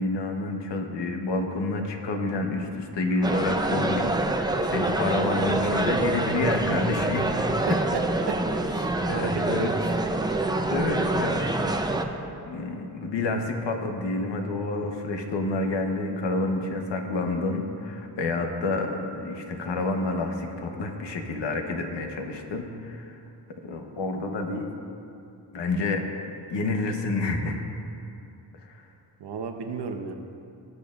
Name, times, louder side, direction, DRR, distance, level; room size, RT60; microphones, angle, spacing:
voice 1, 0.0-7.3 9.1-9.7 10.7-11.8 12.4-23.2 23.5-24.7 25.5-26.0 26.5-27.6 28.7-28.8, left 2 dB, 80° left, 4 dB, 1.0 m, -29 dB
sound 1, 3.2-12.1, right 2 dB, 10° right, 0.5 m, -26 dB
voice 2, 7.7-9.8 29.2-30.1, right 5 dB, 70° right, 5 dB, 0.9 m, -33 dB
18.5 x 6.7 x 2.4 m, 2.6 s
cardioid pair, 85°, 42 cm